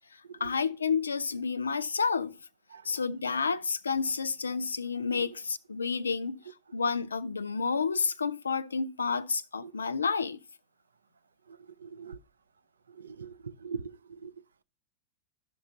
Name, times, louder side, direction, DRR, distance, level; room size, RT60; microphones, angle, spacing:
voice 1, 0.4-2.3 2.8-10.4, left 5 dB, 75° left, 0.4 m, -30 dB
voice 2, 11.5-12.2 13.0-14.3, right 5 dB, 70° right, 0.4 m, -42 dB
12.0 x 6.0 x 2.7 m
figure-of-eight pair, 90°, 0 cm